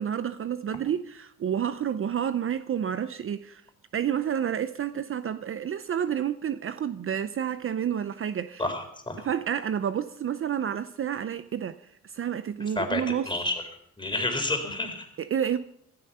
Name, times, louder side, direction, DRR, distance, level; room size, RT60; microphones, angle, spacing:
voice 1, 0.0-3.6 3.9-8.6 9.2-11.8 12.0-13.3 15.2-15.6, right 9 dB, 45° right, 0.7 m, -29 dB
voice 2, 8.6-9.3 12.8-13.5 14.0-15.1, left 2 dB, 15° left, 3.9 m, -30 dB
16.5 x 13.0 x 5.5 m
cardioid pair, 90°, 30 cm